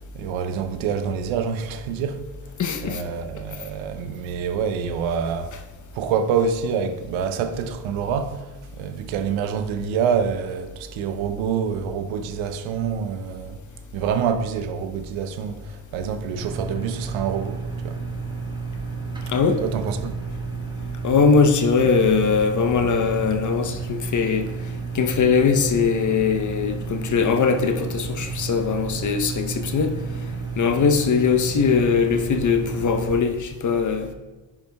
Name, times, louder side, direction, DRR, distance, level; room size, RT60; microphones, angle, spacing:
voice 1, 0.1-2.2 2.8-5.6 5.9-13.6 13.9-18.0 19.6-20.2, right 7 dB, 70° right, 0.8 m, -26 dB
voice 2, 2.6-3.0 19.3-19.6 21.0-24.5 24.9-29.9 30.6-34.1, left 5 dB, 35° left, 0.8 m, -21 dB
sound 1, 16.3-33.2, right 4 dB, 10° right, 1.5 m, -31 dB
10.0 x 5.5 x 2.3 m
hypercardioid pair, 60°, 50 cm